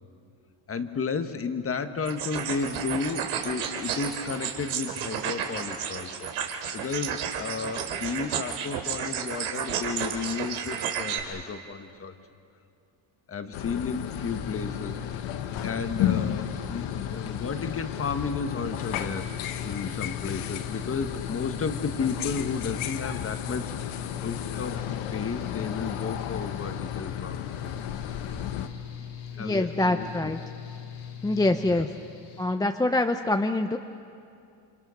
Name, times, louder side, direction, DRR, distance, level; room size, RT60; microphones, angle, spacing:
voice 1, 0.7-6.3 6.7-12.1 13.3-15.0 15.6-19.3 19.6-24.8 25.1-27.5 29.4-30.3 31.7-31.9, left 5 dB, 30° left, 8 dB, 1.4 m, -33 dB
sound 1, 2.1-11.2, right 8 dB, 85° right, 2.9 m, -32 dB
sound 2, 13.5-28.7, left 10 dB, 85° left, 1.4 m, -33 dB
Mechanical fan, 14.1-32.5, left 8 dB, 55° left, 2.9 m, -40 dB
voice 2, 29.4-30.4 31.2-31.9 32.4-33.8, left 2 dB, 10° left, 6 dB, 0.6 m, -25 dB
28.5 x 25.5 x 6.5 m, 2.5 s
cardioid pair, 125°, 47 cm